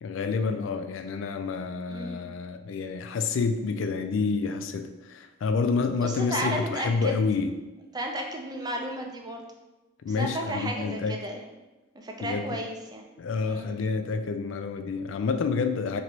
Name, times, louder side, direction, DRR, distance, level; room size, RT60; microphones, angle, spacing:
voice 1, 0.0-7.5 10.0-11.2 12.2-12.4 13.2-16.0, left 4 dB, 70° left, 7 dB, 0.3 m, -28 dB
voice 2, 1.9-2.2 6.0-7.2 7.9-9.5 10.1-11.4 11.9-13.0 13.4-13.8, right 1 dB, 20° right, 2 dB, 0.4 m, -33 dB
3.0 x 2.7 x 4.4 m, 1.1 s
head